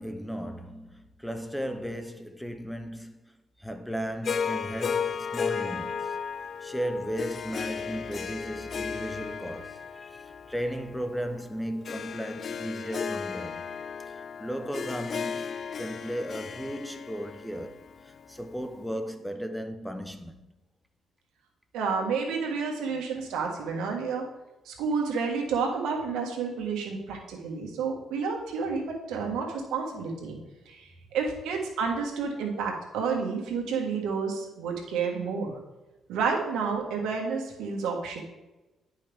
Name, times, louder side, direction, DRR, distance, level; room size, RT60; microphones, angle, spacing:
voice 1, 0.0-3.2 3.6-6.2 6.6-13.7 14.1-17.8 18.0-20.5, equal, ahead, 0.7 m, -35 dB
Harp, 4.2-18.6, left 6 dB, 50° left, 0.3 m, -35 dB
voice 2, 21.7-24.2 24.7-30.4 30.7-35.5 36.1-38.2, right 5 dB, 90° right, 1.6 m, -30 dB
10.0 x 5.5 x 3.5 m
cardioid pair, 90°, 0 cm